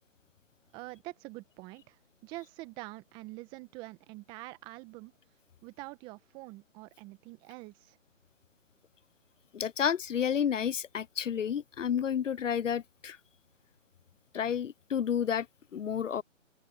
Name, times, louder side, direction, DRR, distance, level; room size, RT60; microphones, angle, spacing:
voice 1, 0.7-5.1 5.6-8.0, right 21 dB, 10° right, 1.3 m, -45 dB
voice 2, 9.5-13.2 14.3-15.5 15.7-16.2, left 8 dB, 70° left, 0.6 m, -30 dB
open air
figure-of-eight pair, 150°, 39 cm